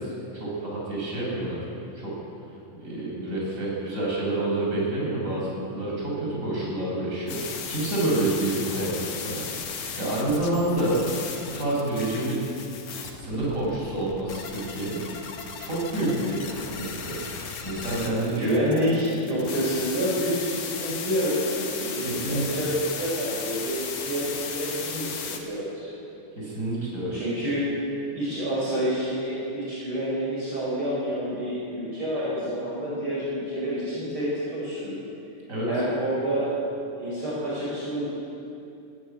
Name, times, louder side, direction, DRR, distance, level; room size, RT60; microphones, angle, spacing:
voice 1, 0.0-1.6 1.9-2.1 2.8-11.1 11.5-12.4 13.1-15.0 15.6-18.5 19.2-19.4 22.0-22.7 26.4-27.3 35.5-35.7, right 2 dB, 20° right, -4 dB, 6.6 m, -28 dB
sound 1, 7.3-25.4, left 6 dB, 65° left, 3.1 m, -36 dB
voice 2, 16.0-16.3 18.2-25.9 27.1-27.7 28.1-35.0 35.7-36.5 37.0-38.1, equal, 40° right, -7 dB, 5.9 m, -28 dB
21.5 x 15.0 x 8.8 m, 2.8 s
omnidirectional pair, 3.7 m